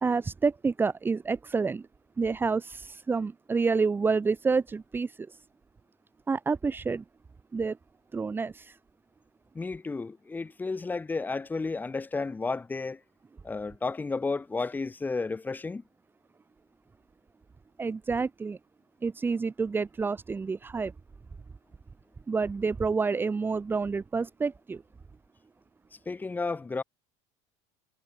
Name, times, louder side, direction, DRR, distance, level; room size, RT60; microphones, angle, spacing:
voice 1, 0.0-1.8 2.2-5.3 6.3-7.0 7.5-7.8 8.1-8.8 17.8-18.6 19.0-20.9 22.3-24.8, right 4 dB, 15° right, 1.9 m, -28 dB
voice 2, 9.5-13.0 13.4-15.8 26.1-26.8, left 3 dB, 10° left, 4.3 m, -32 dB
cardioid pair, 150°, 14 cm